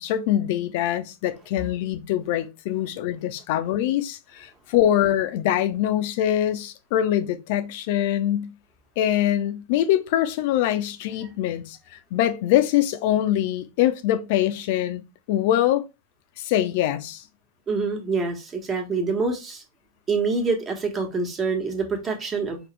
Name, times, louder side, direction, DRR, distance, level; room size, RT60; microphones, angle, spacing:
voice 1, 0.0-8.5 9.0-15.0 15.3-15.8 16.4-17.2, left 12 dB, 50° left, 0.6 m, -23 dB
voice 2, 17.7-19.6 20.1-22.6, right 4 dB, 25° right, 1.3 m, -26 dB
5.1 x 2.9 x 3.2 m
figure-of-eight pair, 90°, 0 cm